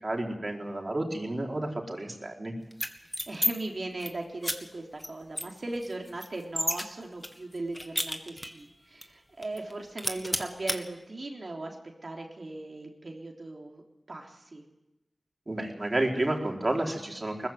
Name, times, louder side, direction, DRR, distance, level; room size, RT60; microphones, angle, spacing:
voice 1, 0.0-2.5 15.5-17.5, right 1 dB, 45° right, 1 dB, 4.6 m, -31 dB
sound 1, 2.7-3.5 3.8-4.1 4.4-4.6 5.0-5.1 5.4-6.8 7.2-8.6 9.0-9.1 9.4-9.7 10.0-10.8, equal, 5° left, 2.1 m, -31 dB
voice 2, 3.3-11.8 12.0-13.8 14.1-14.7, right 2 dB, 60° right, 1 dB, 3.6 m, -38 dB
20.5 x 15.0 x 9.4 m, 0.92 s
cardioid pair, 40°, 0 cm